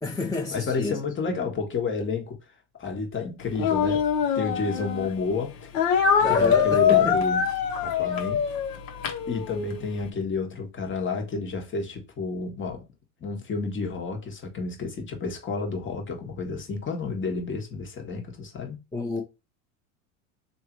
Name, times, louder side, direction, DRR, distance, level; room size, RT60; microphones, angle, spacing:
voice 1, 0.0-1.0 1.3-1.4 6.2-7.2 18.9-19.2, left 2 dB, 5° left, 1.2 m, -29 dB
voice 2, 0.5-2.4 2.8-4.1 4.3-5.7 6.3-7.4 7.8-8.4 9.3-12.8 13.2-18.8, left 4 dB, 30° left, 1.6 m, -30 dB
Speech, 3.5-5.1 5.7-9.8, left 7 dB, 65° left, 1.3 m, -23 dB
3.2 x 2.7 x 4.5 m
hypercardioid pair, 95°, 41 cm